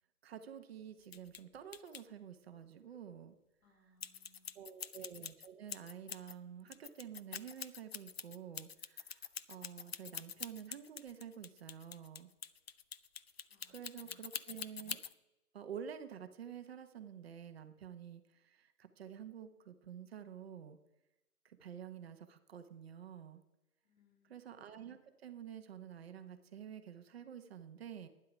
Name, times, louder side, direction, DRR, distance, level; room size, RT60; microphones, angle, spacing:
voice 1, 0.2-3.3 4.5-12.3 13.7-15.0 15.5-20.8 21.4-23.4 24.2-28.1, right 8 dB, 40° right, 9 dB, 1.1 m, -49 dB
sound 1, 1.0-1.4 1.7-2.0 4.0-6.3 6.7-15.1, left 7 dB, 45° left, 0.4 m, -45 dB
voice 2, 3.6-4.7 13.5-14.3 23.8-24.4, equal, 60° left, 3 dB, 3.2 m, -71 dB
11.5 x 9.9 x 5.1 m, 0.95 s
figure-of-eight pair, 130°, 45 cm